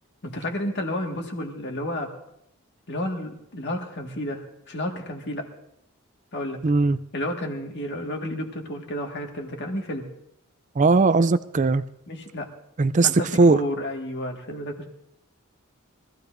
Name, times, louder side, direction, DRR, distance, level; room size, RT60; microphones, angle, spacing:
voice 1, 0.2-2.1 2.9-5.5 6.3-6.6 7.1-10.1 12.1-12.5 13.0-14.9, left 1 dB, 55° left, 2 dB, 1.8 m, -31 dB
voice 2, 6.6-7.0 10.8-11.8 12.8-13.1 13.4-13.6, right 3 dB, 35° right, 13 dB, 0.4 m, -18 dB
23.5 x 15.0 x 2.6 m, 0.78 s
head